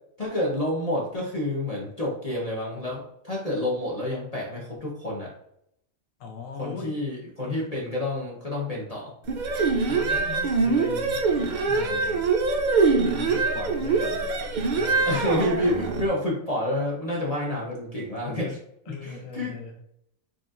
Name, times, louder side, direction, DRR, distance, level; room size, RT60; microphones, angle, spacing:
voice 1, 0.2-5.3 6.6-9.1 15.0-18.6 18.9-19.6, left 1 dB, 35° left, -4 dB, 0.8 m, -29 dB
voice 2, 6.2-7.0 7.4-7.7 9.9-12.3 13.1-14.3 14.6-15.1 18.9-19.8, left 4 dB, 80° left, 5 dB, 1.2 m, -39 dB
sound 1, 9.3-16.1, right 4 dB, 70° right, 0.4 m, -24 dB
4.8 x 3.1 x 2.4 m, 0.73 s
omnidirectional pair, 1.4 m